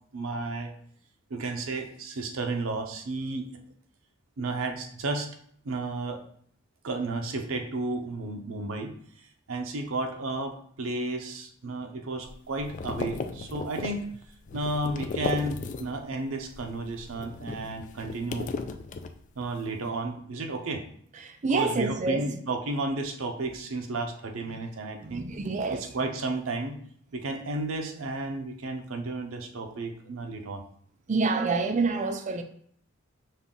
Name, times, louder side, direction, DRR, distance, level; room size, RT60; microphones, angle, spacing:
voice 1, 0.1-0.7 1.3-3.5 4.4-5.3 5.6-6.2 6.8-8.9 9.5-14.0 14.5-18.6 19.4-20.8 21.5-25.3 25.7-26.8 27.1-30.6, right 2 dB, 90° right, 0.6 m, -32 dB
sound 1, 12.2-16.1 16.4-19.6, left 4 dB, 40° left, 0.3 m, -36 dB
voice 2, 21.2-22.3 25.0-25.8 31.1-32.4, right 3 dB, 35° right, 0.4 m, -27 dB
5.5 x 2.3 x 3.7 m
head